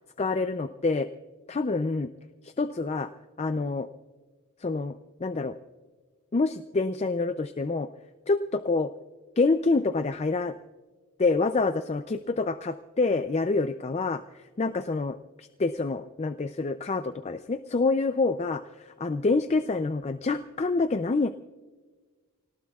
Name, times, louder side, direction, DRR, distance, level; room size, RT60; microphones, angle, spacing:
voice 1, 0.2-1.1 1.5-2.1 2.4-3.1 3.4-3.9 4.6-4.9 5.2-5.6 6.3-7.9 8.3-8.4 8.7-8.9 9.4-10.5 11.2-18.6 19.0-21.3, left 3 dB, 30° left, 10 dB, 0.4 m, -27 dB
29.0 x 18.5 x 2.4 m, 1.4 s
head